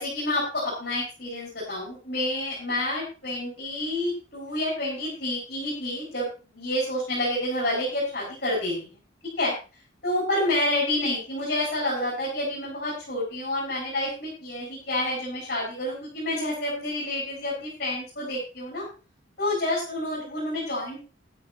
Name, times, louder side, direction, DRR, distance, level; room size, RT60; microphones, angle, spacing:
voice 1, 0.0-6.3 6.5-9.0 9.4-9.5 10.0-18.9 19.4-21.0, left 1 dB, 50° left, -5 dB, 6.9 m, -28 dB
12.5 x 11.5 x 4.3 m, 0.34 s
head